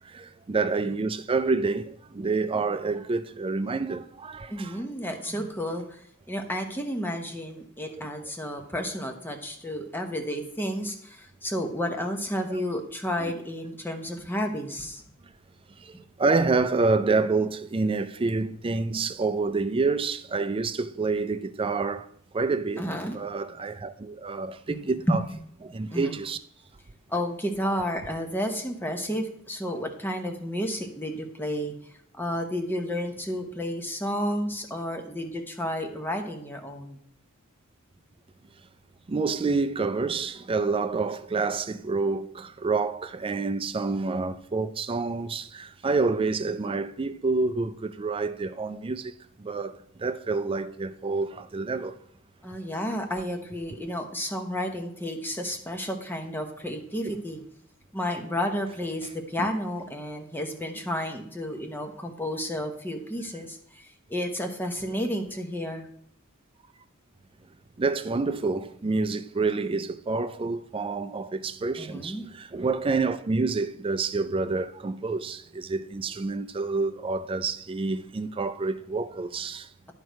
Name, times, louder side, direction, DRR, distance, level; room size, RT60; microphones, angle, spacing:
voice 1, 0.0-4.8 7.9-8.1 12.5-12.6 13.2-13.3 15.8-22.1 22.3-22.9 23.1-25.2 25.6-26.4 39.1-52.0 57.0-57.2 59.4-59.5 67.8-79.7, right 3 dB, 25° right, 0.4 m, -28 dB
voice 2, 4.5-15.0 22.8-23.2 24.7-24.8 25.1-25.2 25.7-26.2 27.1-31.7 32.2-37.0 52.4-57.4 57.9-65.9 71.8-72.3, equal, 10° left, 0.9 m, -31 dB
10.5 x 4.7 x 4.6 m
head